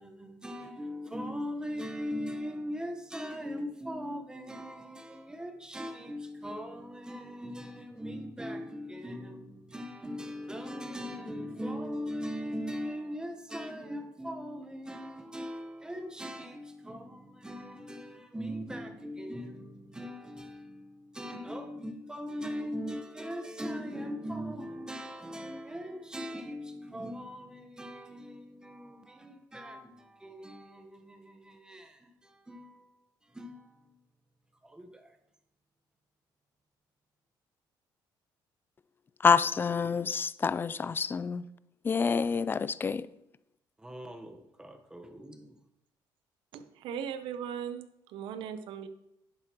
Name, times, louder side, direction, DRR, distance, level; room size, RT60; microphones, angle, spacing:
voice 1, 0.0-32.9 33.3-34.0 34.6-35.1 43.8-45.5, equal, 10° right, 1.1 m, -40 dB
voice 2, 39.2-41.4 41.8-43.1, left 5 dB, 25° left, 0.3 m, -27 dB
voice 3, 46.5-48.9, right 8 dB, 80° right, 0.7 m, -38 dB
10.5 x 7.8 x 3.0 m
cardioid pair, 110°, 8 cm